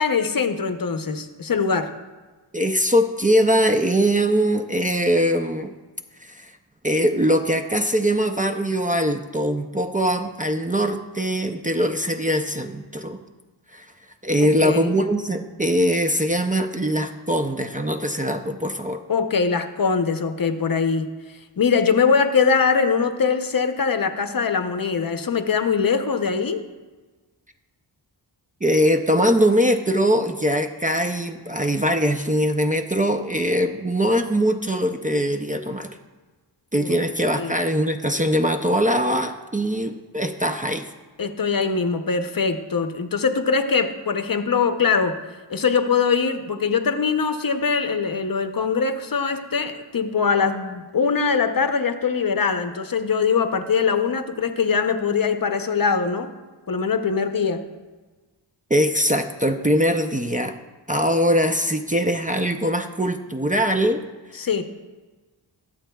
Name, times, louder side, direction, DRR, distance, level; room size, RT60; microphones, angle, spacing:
voice 1, 0.0-1.9 14.6-15.0 19.1-21.1 21.6-26.6 36.8-37.0 37.4-37.5 41.2-45.1 45.5-56.3 56.7-57.6 64.4-64.6, left 5 dB, 50° left, 8 dB, 0.7 m, -22 dB
voice 2, 2.5-5.7 6.2-6.5 6.8-13.2 13.7-13.9 14.2-19.0 28.6-35.9 36.7-40.9 58.7-60.6 60.9-64.0, equal, 20° right, 5 dB, 0.4 m, -22 dB
22.0 x 7.4 x 2.3 m, 1.3 s
wide cardioid pair, 95°, 44 cm